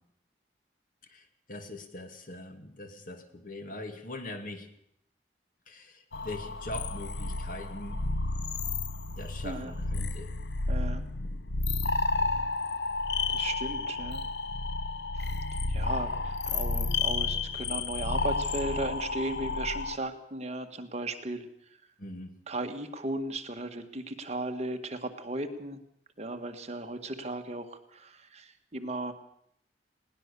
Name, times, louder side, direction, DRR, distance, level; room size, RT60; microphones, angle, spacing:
voice 1, 1.1-4.7 5.7-8.0 9.2-10.3 22.0-22.3, left 1 dB, 50° left, 7 dB, 2.5 m, -42 dB
sound 1, 6.1-20.0, left 3 dB, 75° left, 0.9 m, -31 dB
voice 2, 9.4-9.7 10.7-11.0 13.3-14.2 15.1-15.3 15.7-21.8 22.5-25.8 26.2-29.1, right 2 dB, 40° right, 6 dB, 1.7 m, -36 dB
20.5 x 18.0 x 6.9 m, 0.71 s
head